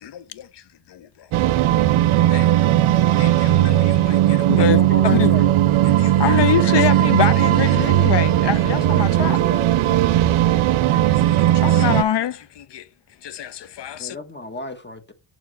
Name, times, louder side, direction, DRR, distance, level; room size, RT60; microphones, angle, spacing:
voice 1, 0.0-0.6 0.9-1.3 2.3-2.5 3.2-5.4 6.0-9.4 10.9-12.9 13.2-14.2, left 9 dB, 60° left, 0.7 m, -25 dB
sound 1, 1.3-12.0, right 13 dB, 75° right, 0.6 m, -17 dB
voice 2, 4.6-5.5 14.0-15.1, left 2 dB, 20° left, 1.0 m, -31 dB
voice 3, 8.8-10.7, right 3 dB, 15° right, 0.5 m, -36 dB
7.2 x 4.5 x 6.2 m
wide cardioid pair, 125°, 48 cm